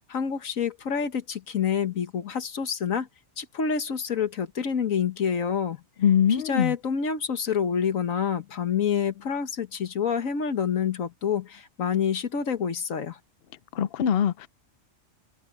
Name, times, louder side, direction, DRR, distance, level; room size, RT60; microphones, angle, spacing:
voice 1, 0.1-3.1 3.4-5.8 6.3-13.2, left 7 dB, 80° left, 1.7 m, -27 dB
voice 2, 6.0-6.7 13.7-14.5, left 8 dB, 55° left, 0.8 m, -22 dB
omnidirectional pair, 1.4 m